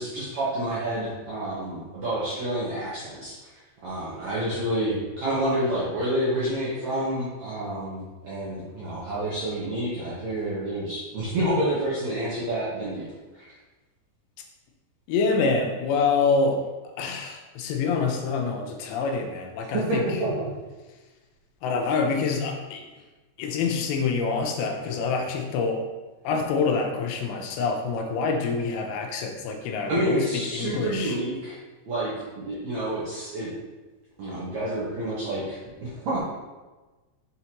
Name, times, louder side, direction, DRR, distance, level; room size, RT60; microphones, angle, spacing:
voice 1, 0.0-3.4 3.8-13.1 13.3-13.4 19.7-20.5 29.9-31.6 31.9-33.5 34.2-36.2, right 1 dB, 70° right, -9 dB, 1.7 m, -28 dB
voice 2, 15.1-16.6 17.0-20.1 21.6-22.8 23.4-25.8 26.2-31.2, left 4 dB, 85° left, 3 dB, 2.9 m, -26 dB
6.3 x 5.6 x 2.9 m, 1.2 s
omnidirectional pair, 5.0 m